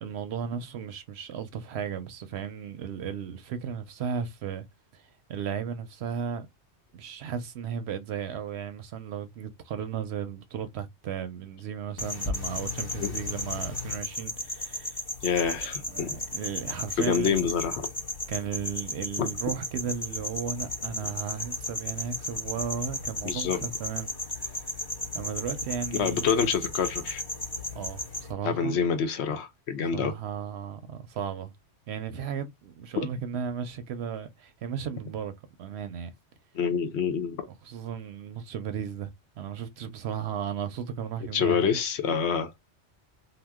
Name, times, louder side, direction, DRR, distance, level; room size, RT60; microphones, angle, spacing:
voice 1, 0.0-4.7 4.9-6.5 6.9-15.0 15.6-17.5 18.3-24.1 24.4-24.7 25.1-26.4 27.7-28.8 29.9-31.5 31.9-35.3 35.6-36.1 37.6-41.7, right 7 dB, 65° right, 0.8 m, -35 dB
sound 1, 12.0-28.3, left 2 dB, 20° left, 0.8 m, -35 dB
voice 2, 15.2-16.2 17.0-17.9 19.2-19.3 23.2-23.6 25.9-27.2 28.4-30.1 36.5-37.5 41.3-42.5, left 6 dB, 65° left, 0.9 m, -27 dB
2.8 x 2.1 x 3.4 m
omnidirectional pair, 1.2 m